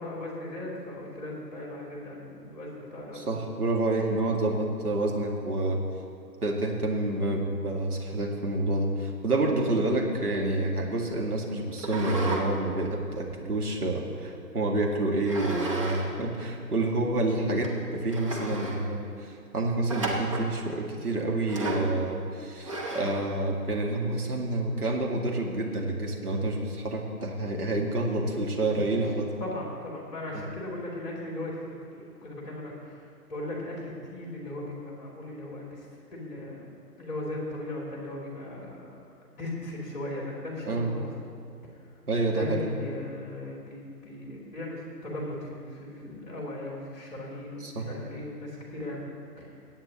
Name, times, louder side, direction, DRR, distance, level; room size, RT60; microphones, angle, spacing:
voice 1, 0.0-3.3 28.9-29.0 29.4-36.7 37.0-41.1 42.3-49.5, left 1 dB, 25° left, -3 dB, 2.8 m, -38 dB
voice 2, 3.1-5.8 6.4-29.3 30.3-30.5 40.7-40.9 42.1-42.7 47.6-47.8, right 2 dB, 65° right, 0 dB, 2.0 m, -28 dB
sound 1, 11.8-12.5 12.9-14.2 15.3-16.1 16.3-16.4 17.1-17.2 17.6-17.7 18.1-18.8 19.9-20.5 21.5-21.9 22.6-23.2, right 2 dB, 20° right, 0.9 m, -33 dB
22.0 x 8.8 x 2.9 m, 2.4 s
figure-of-eight pair, 145°, 49 cm